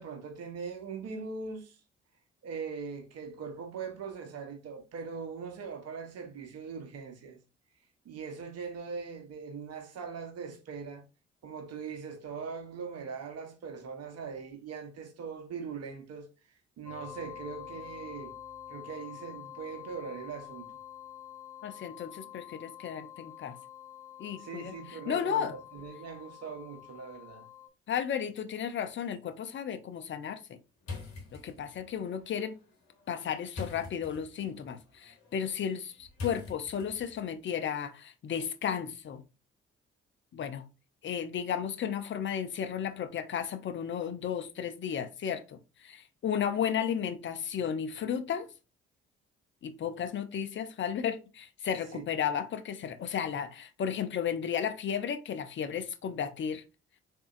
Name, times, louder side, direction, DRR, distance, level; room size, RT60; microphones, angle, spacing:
voice 1, 0.0-1.8 2.4-7.4 8.0-11.0 11.4-16.3 16.8-18.3 18.7-20.7 24.4-27.4 51.9-52.0, right 5 dB, 55° right, 0.9 m, -41 dB
sound 1, 16.9-27.7, left 10 dB, 10° left, 1.0 m, -47 dB
voice 2, 21.6-23.6 24.2-24.7 25.1-25.5 27.9-30.4 31.3-32.6 33.1-39.2 40.3-40.7 41.0-48.5 49.6-56.6, left 8 dB, 40° left, 0.6 m, -34 dB
sound 2, 30.8-37.3, left 4 dB, 60° left, 1.3 m, -45 dB
3.6 x 2.6 x 2.5 m
hypercardioid pair, 45°, 30 cm